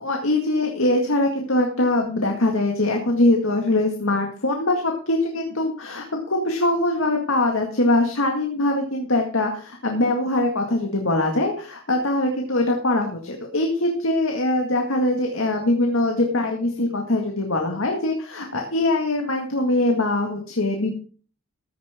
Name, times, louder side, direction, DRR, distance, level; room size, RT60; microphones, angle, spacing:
voice 1, 0.0-20.9, left 2 dB, 70° left, 2 dB, 2.0 m, -22 dB
15.0 x 9.6 x 3.7 m, 0.40 s
head